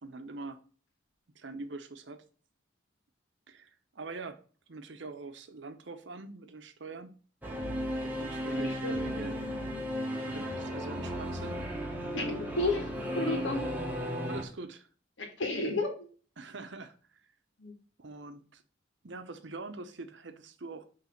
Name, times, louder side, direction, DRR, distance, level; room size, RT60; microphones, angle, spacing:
voice 1, 0.0-0.6 1.3-2.2 3.5-4.4 4.7-7.2 8.0-9.4 10.2-11.7 13.2-13.5 14.3-14.9 16.4-17.2 18.0-18.6 19.0-20.8, right 3 dB, 75° right, 0.8 m, -43 dB
Singing / Musical instrument, 7.4-14.4, equal, 10° right, 1.0 m, -35 dB
voice 2, 8.6-9.1 12.1-12.9 13.2-13.7 15.2-16.1 17.6-17.7, left 2 dB, 90° left, 1.8 m, -32 dB
5.9 x 3.3 x 5.7 m
head